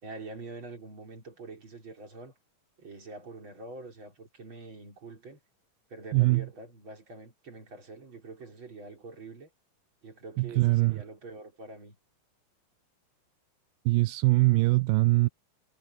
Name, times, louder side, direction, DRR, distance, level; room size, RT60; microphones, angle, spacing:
voice 1, 0.0-2.3 2.8-5.4 5.9-9.5 10.0-12.0, right 3 dB, 30° right, 5.2 m, -45 dB
voice 2, 6.1-6.5 10.4-11.0 13.9-15.3, right 22 dB, 80° right, 2.1 m, -23 dB
omnidirectional pair, 4.2 m